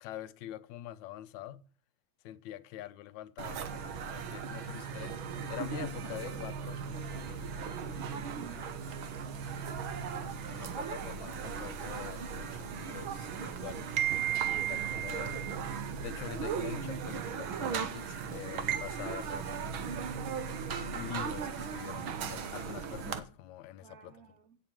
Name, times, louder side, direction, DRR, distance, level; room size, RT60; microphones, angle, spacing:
voice 1, 0.0-1.6 2.2-5.2 5.5-7.8 10.1-14.0 14.4-15.4 16.0-20.0 20.9-24.2, left 13 dB, 70° left, 1.9 m, -45 dB
sound 1, 3.4-23.2, right 7 dB, 70° right, 1.2 m, -36 dB
voice 2, 8.3-9.5 14.3-14.6 23.8-24.6, right 5 dB, 40° right, 1.4 m, -55 dB
9.1 x 7.6 x 8.8 m
omnidirectional pair, 3.8 m